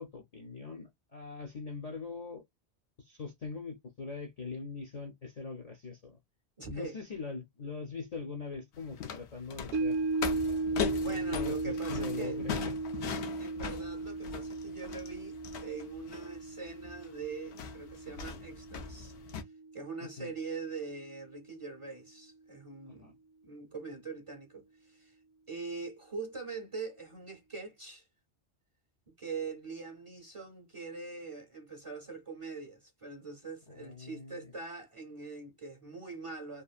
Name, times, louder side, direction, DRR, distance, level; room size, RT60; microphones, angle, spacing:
voice 1, 0.0-2.4 3.0-6.2 6.7-10.0 10.4-12.7 20.0-20.3 23.0-23.1 33.7-34.5, left 4 dB, 50° left, 0.5 m, -42 dB
voice 2, 6.6-7.0 10.9-12.4 13.4-19.1 19.7-23.2 23.4-25.2 25.5-28.0 29.1-36.6, right 4 dB, 35° right, 0.6 m, -43 dB
sound 1, 8.7-19.4, left 7 dB, 90° left, 0.9 m, -40 dB
sound 2, 9.7-20.1 20.5-20.6, right 3 dB, 70° right, 0.8 m, -36 dB
2.8 x 2.4 x 2.3 m
omnidirectional pair, 1.1 m